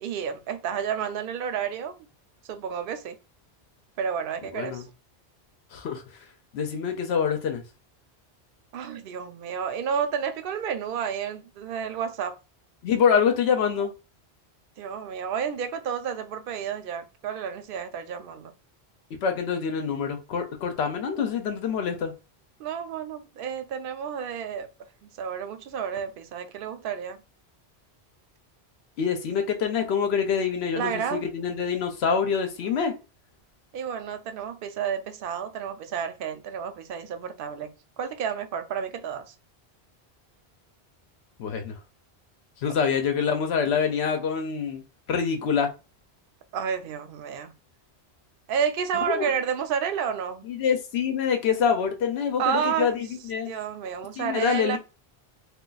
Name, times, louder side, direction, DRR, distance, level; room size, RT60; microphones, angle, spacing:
voice 1, 0.0-2.0 2.5-3.2 4.0-4.8 8.7-12.4 14.8-18.5 22.6-24.7 25.0-27.2 30.7-31.3 33.7-37.7 38.0-39.3 46.5-47.5 48.5-50.5 52.4-53.0 53.5-54.8, right 7 dB, 65° right, 0.7 m, -30 dB
voice 2, 4.5-4.8 5.7-6.0 6.5-7.6 12.8-13.9 19.2-22.1 29.0-32.9 41.4-41.7 42.6-44.8 45.1-45.7 49.1-49.3 50.4-53.5 54.2-54.8, left 6 dB, 80° left, 0.8 m, -25 dB
2.4 x 2.2 x 3.9 m
omnidirectional pair, 1.1 m